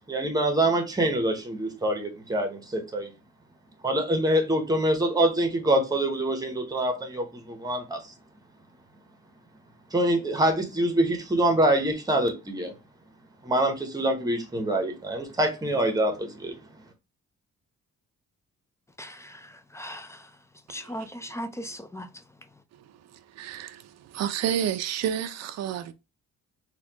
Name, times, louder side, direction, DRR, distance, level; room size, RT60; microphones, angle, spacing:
voice 1, 0.0-3.1 3.8-8.0 9.9-12.7 13.4-16.6, right 1 dB, 15° right, 0.8 m, -25 dB
voice 2, 19.0-20.2 20.7-22.1, equal, 10° left, 0.3 m, -38 dB
voice 3, 23.1-25.9, right 9 dB, 60° right, 0.4 m, -30 dB
4.1 x 2.3 x 2.8 m
cardioid pair, 145°, 30 cm